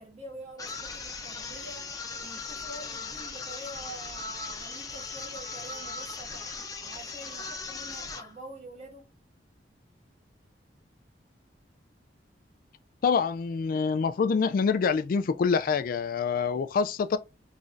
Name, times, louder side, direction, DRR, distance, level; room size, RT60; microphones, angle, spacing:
voice 1, 0.0-1.9 2.2-6.5 6.8-9.1, right 1 dB, 40° right, 1.5 m, -46 dB
sound 1, 0.6-8.3, left 4 dB, 20° left, 0.6 m, -38 dB
voice 2, 13.0-17.2, left 5 dB, 55° left, 0.3 m, -26 dB
3.7 x 3.1 x 2.5 m
head